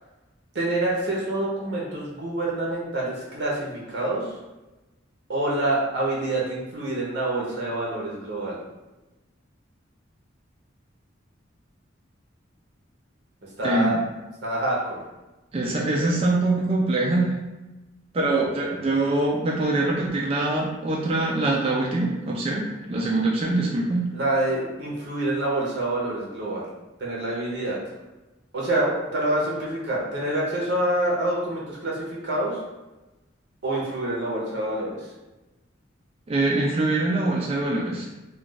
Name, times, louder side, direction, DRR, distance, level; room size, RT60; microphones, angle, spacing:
voice 1, 0.5-4.3 5.3-8.6 13.6-14.0 14.4-15.0 24.1-26.7 27.0-27.8 28.5-32.6 33.6-35.1, right 1 dB, 60° right, -4 dB, 0.7 m, -26 dB
voice 2, 13.6-14.0 15.5-17.3 18.1-24.1 36.3-38.1, right 2 dB, 30° right, -3 dB, 0.3 m, -24 dB
2.3 x 2.3 x 3.9 m, 1.1 s
head